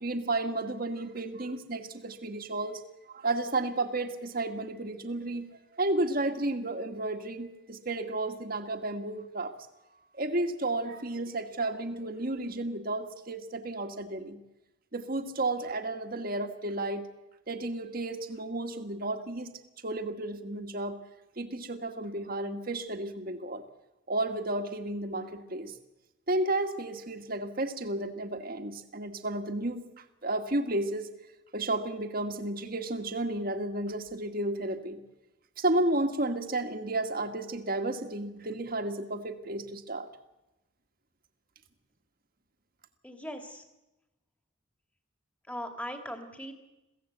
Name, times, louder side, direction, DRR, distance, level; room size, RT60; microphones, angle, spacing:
voice 1, 0.0-2.8 3.1-5.5 5.7-9.5 10.1-14.4 14.9-17.1 17.5-19.5 19.8-21.0 21.4-23.6 24.1-25.7 26.3-31.1 31.5-35.0 35.6-40.1, right 2 dB, 45° right, 6 dB, 1.6 m, -32 dB
voice 2, 43.0-43.6 45.5-46.5, equal, 5° left, 5 dB, 2.1 m, -39 dB
22.5 x 16.0 x 8.0 m, 0.99 s
head